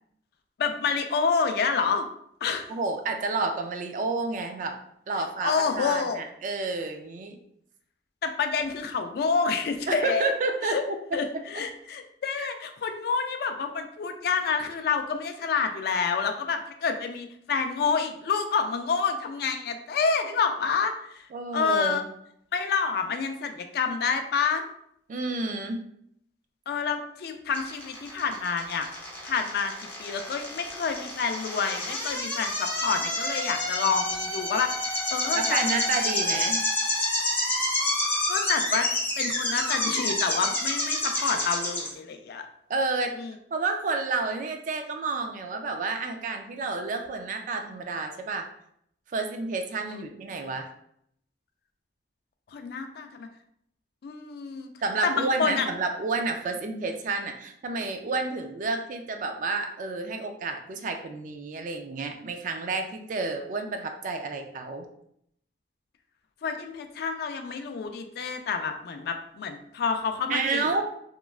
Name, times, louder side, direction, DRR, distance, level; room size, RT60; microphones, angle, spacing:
voice 1, 0.6-2.1 2.4-2.7 5.2-6.2 8.2-10.3 10.7-10.8 11.1-21.2 21.5-22.0 22.5-24.6 26.7-28.9 29.2-29.7 30.0-35.8 38.3-38.9 39.2-42.5 43.2-43.3 49.9-50.0 52.5-53.3 54.0-54.7 55.0-55.7 66.4-70.8, left 5 dB, 60° left, 7 dB, 0.3 m, -28 dB
voice 2, 2.7-4.8 5.1-7.4 9.9-11.4 12.4-12.5 21.3-22.0 25.1-25.8 35.3-36.6 42.7-43.1 43.5-48.5 49.1-50.7 54.8-64.9 70.3-70.8, right 3 dB, 45° right, 5 dB, 0.3 m, -30 dB
sound 1, 27.5-41.9, left 1 dB, 10° left, 0.7 m, -28 dB
3.0 x 2.3 x 2.3 m, 0.71 s
head